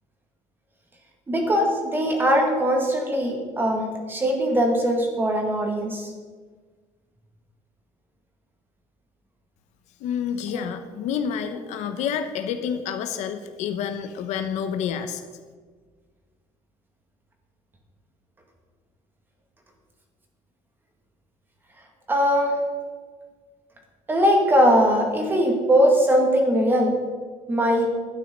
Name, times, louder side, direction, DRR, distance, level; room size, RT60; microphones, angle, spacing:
voice 1, 1.3-6.1 10.5-10.6 22.1-22.6 24.1-26.9 27.5-27.9, equal, 15° right, 2 dB, 2.0 m, -21 dB
voice 2, 10.0-15.2, left 8 dB, 65° left, 8 dB, 1.0 m, -29 dB
12.0 x 9.4 x 5.4 m, 1.5 s
cardioid pair, 160°, 13 cm